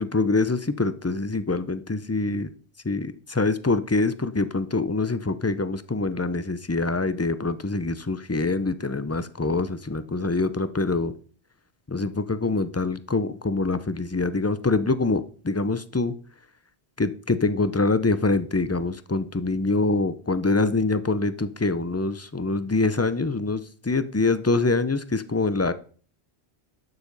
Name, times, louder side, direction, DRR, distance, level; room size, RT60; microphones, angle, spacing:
voice 1, 0.0-2.5 2.8-11.1 11.9-16.1 17.0-25.7, left 3 dB, 20° left, 13 dB, 0.5 m, -25 dB
12.0 x 6.8 x 5.3 m, 0.42 s
omnidirectional pair, 1.1 m